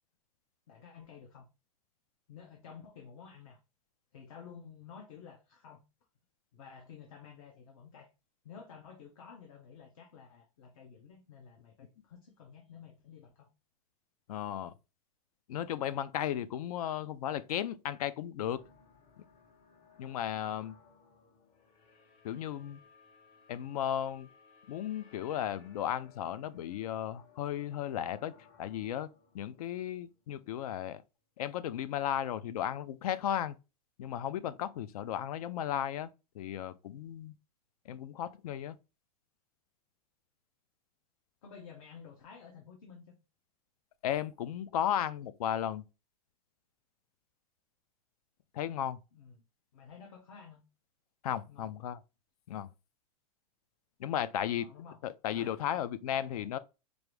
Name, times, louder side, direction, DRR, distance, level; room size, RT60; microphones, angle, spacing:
voice 1, 0.7-1.5 2.3-3.6 4.1-5.8 6.5-8.1 8.4-13.5 41.4-43.2 49.1-49.3 49.7-50.6 51.5-51.7 54.5-55.0 55.3-55.6 56.1-56.5, left 6 dB, 65° left, 1.0 m, -52 dB
voice 2, 14.3-14.7 15.5-18.6 20.0-20.7 22.2-22.8 23.5-24.3 24.7-28.3 28.6-29.1 29.3-31.0 31.4-33.6 34.0-37.3 37.9-38.8 44.0-45.8 48.5-49.0 51.2-52.0 52.5-52.7 54.0-54.7 55.0-56.6, left 10 dB, 85° left, 0.4 m, -35 dB
sound 1, 18.5-30.6, left 5 dB, 35° left, 0.8 m, -62 dB
4.6 x 2.6 x 3.2 m
supercardioid pair, 165°, 19 cm